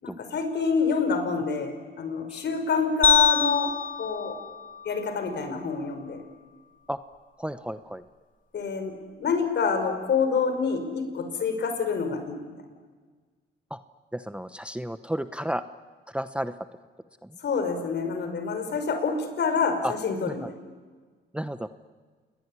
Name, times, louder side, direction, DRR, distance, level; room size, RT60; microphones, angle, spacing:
voice 1, 0.0-4.4 4.9-6.2 8.5-12.5 17.4-20.5, left 5 dB, 60° left, 7 dB, 5.6 m, -27 dB
sound 1, 3.0-5.4, left 6 dB, 40° left, 4.3 m, -25 dB
voice 2, 7.4-8.0 13.7-13.8 14.1-15.6 16.1-16.6 17.2-17.3 19.8-19.9 20.3-20.5 21.3-21.7, equal, 5° right, 11 dB, 0.9 m, -32 dB
28.5 x 21.0 x 9.9 m, 1.5 s
cardioid pair, 90°, 20 cm